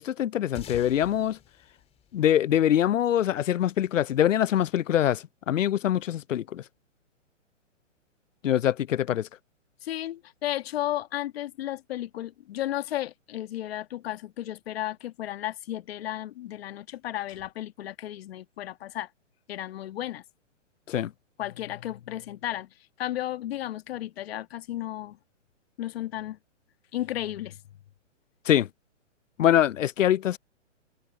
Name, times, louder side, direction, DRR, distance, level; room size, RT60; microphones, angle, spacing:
voice 1, 0.0-1.4 2.1-6.6 8.4-9.3 20.9-21.1 28.5-28.7 29.4-30.4, left 11 dB, 80° left, 0.6 m, -24 dB
sound 1, 0.5-3.3, left 9 dB, 15° left, 3.6 m, -47 dB
voice 2, 9.8-19.1 19.5-20.2 21.4-22.7 23.0-25.2 25.8-26.4 26.9-27.6, left 13 dB, 55° left, 1.6 m, -33 dB
hypercardioid pair, 140°, 37 cm